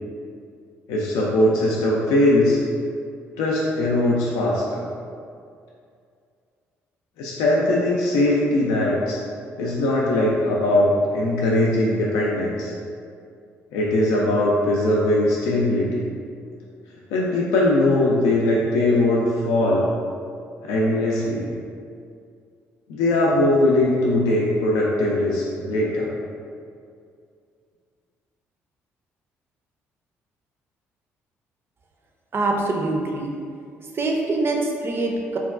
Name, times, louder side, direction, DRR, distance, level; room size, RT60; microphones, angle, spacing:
voice 1, 0.9-2.6 3.4-4.9 7.2-9.2 9.6-12.7 13.7-16.0 17.1-19.9 20.6-21.5 22.9-26.1, left 1 dB, 85° left, -4 dB, 0.4 m, -20 dB
voice 2, 32.3-33.3 33.9-35.4, right 2 dB, 40° right, 1 dB, 0.5 m, -24 dB
3.9 x 2.2 x 2.4 m, 2.3 s
supercardioid pair, 60°, 6 cm